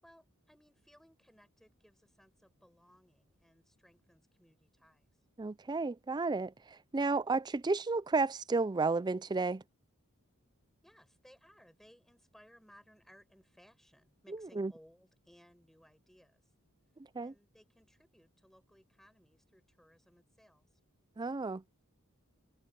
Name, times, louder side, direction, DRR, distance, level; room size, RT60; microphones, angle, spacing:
voice 1, 0.0-5.1 10.8-16.5 17.2-20.8, equal, ahead, 5.4 m, -63 dB
voice 2, 5.4-6.5 6.9-9.6 14.6-14.7 17.2-17.3 21.2-21.6, right 3 dB, 20° right, 0.4 m, -32 dB
head